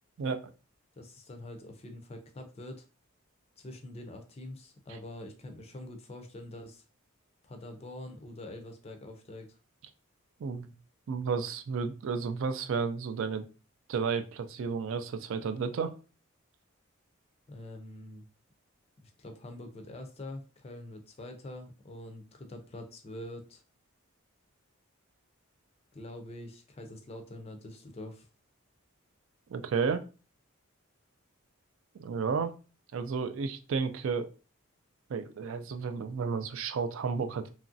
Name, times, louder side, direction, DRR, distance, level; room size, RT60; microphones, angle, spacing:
voice 1, 0.2-0.5 4.9-5.0 10.4-10.7 11.1-13.5 13.9-16.0 29.5-30.0 32.0-32.5 32.9-34.3 35.1-37.5, right 5 dB, 65° right, 10 dB, 0.3 m, -32 dB
voice 2, 1.0-2.9 3.6-6.8 7.4-9.6 17.5-18.2 19.0-23.6 25.9-28.2, left 1 dB, 30° left, 5 dB, 0.4 m, -45 dB
3.0 x 2.5 x 2.5 m, 0.34 s
head